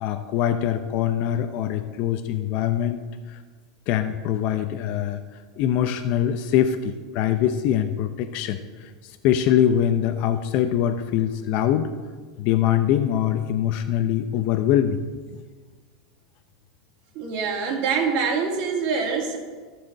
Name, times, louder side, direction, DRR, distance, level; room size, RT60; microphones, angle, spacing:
voice 1, 0.0-3.0 3.3-3.4 3.9-5.2 5.6-8.9 9.2-11.9 12.4-15.0, left 10 dB, 55° left, 8 dB, 0.6 m, -23 dB
voice 2, 17.2-19.4, right 5 dB, 55° right, 1 dB, 2.2 m, -25 dB
12.0 x 4.9 x 7.2 m, 1.5 s
supercardioid pair, 120°, 3 cm